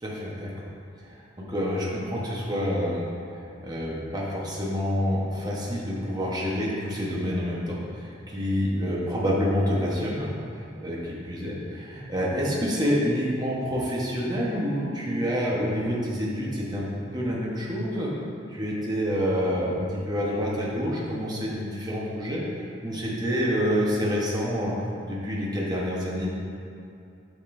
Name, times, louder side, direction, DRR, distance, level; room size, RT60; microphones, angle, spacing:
voice 1, 0.0-0.5 1.0-1.2 1.5-3.1 3.3-16.9 17.1-18.1 18.5-22.4 22.8-24.7 25.0-26.3, equal, 20° right, -5 dB, 1.0 m, -27 dB
8.6 x 5.2 x 2.6 m, 2.6 s
head